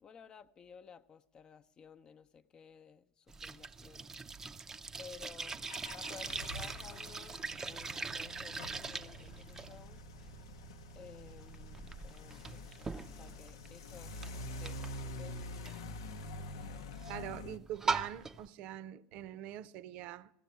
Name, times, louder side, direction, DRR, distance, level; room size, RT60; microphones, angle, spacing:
voice 1, 0.0-4.1 5.0-10.0 10.9-14.1 14.5-15.4, left 6 dB, 35° left, 0.7 m, -55 dB
sound 1, 3.3-18.5, right 4 dB, 20° right, 0.5 m, -42 dB
sound 2, 5.7-17.6, left 2 dB, 85° left, 0.7 m, -46 dB
voice 2, 17.1-20.3, right 12 dB, 60° right, 0.6 m, -44 dB
15.5 x 6.9 x 9.4 m
hypercardioid pair, 90°, 2 cm